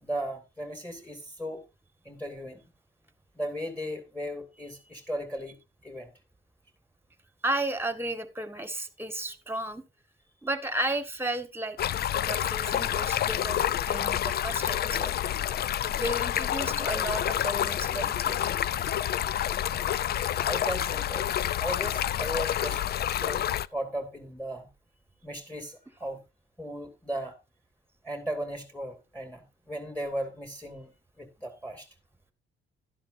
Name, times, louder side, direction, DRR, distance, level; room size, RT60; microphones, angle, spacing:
voice 1, 0.0-1.6 2.0-2.6 3.4-5.5 5.8-6.1 16.9-17.0 20.4-21.2 21.6-22.8 23.1-23.4 23.7-24.7 25.2-26.2 26.6-27.4 28.0-30.9 31.2-31.9, equal, 10° left, 5 dB, 2.4 m, -36 dB
voice 2, 7.4-9.8 10.4-11.8 12.1-15.1 15.9-18.6, right 1 dB, 10° right, 11 dB, 1.5 m, -33 dB
Stream, 11.8-23.7, left 11 dB, 55° left, 0.4 m, -28 dB
12.0 x 10.5 x 2.6 m, 0.26 s
cardioid pair, 90°, 20 cm